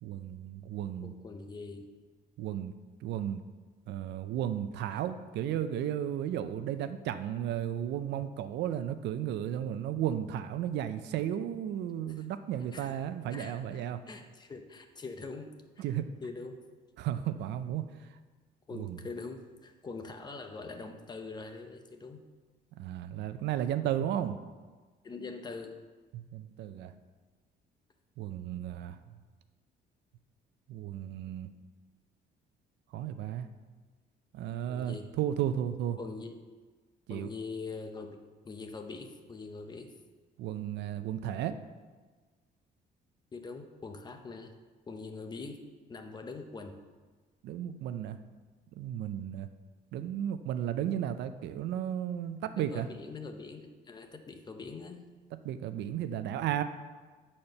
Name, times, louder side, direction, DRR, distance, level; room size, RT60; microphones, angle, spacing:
voice 1, 0.0-1.1 2.4-2.7 3.0-3.4 3.9-14.0 15.8-16.0 17.0-17.8 18.7-19.0 22.8-24.4 26.1-26.9 28.2-29.0 30.7-31.5 32.9-33.5 34.3-36.0 37.1-37.3 40.4-41.6 47.4-48.2 48.8-49.5 49.9-52.9 55.4-56.6, right 10 dB, 80° right, 10 dB, 0.5 m, -34 dB
voice 2, 1.0-1.9 4.9-5.0 12.1-12.2 12.7-13.0 13.3-15.9 16.2-16.6 18.7-22.2 25.0-25.8 34.7-35.1 36.0-36.4 37.1-38.2 38.4-39.9 43.3-44.5 44.9-45.6 45.9-46.7 52.5-55.0, left 4 dB, 25° left, 6 dB, 0.7 m, -43 dB
8.8 x 4.3 x 6.5 m, 1.4 s
cardioid pair, 145°, 18 cm